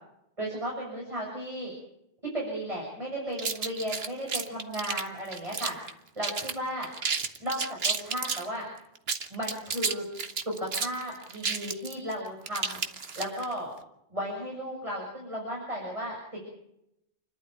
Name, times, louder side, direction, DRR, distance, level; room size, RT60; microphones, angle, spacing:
voice 1, 0.4-1.7 2.2-5.7 6.2-6.9 7.4-8.7 9.3-10.0 10.5-12.8 13.2-13.7 14.1-16.4, equal, 30° right, -3 dB, 7.3 m, -34 dB
sound 1, 3.4-5.9 6.2-6.6 6.8-8.5 9.0-13.5, right 5 dB, 70° right, 1.5 m, -31 dB
29.5 x 12.0 x 9.3 m, 0.79 s
omnidirectional pair, 1.1 m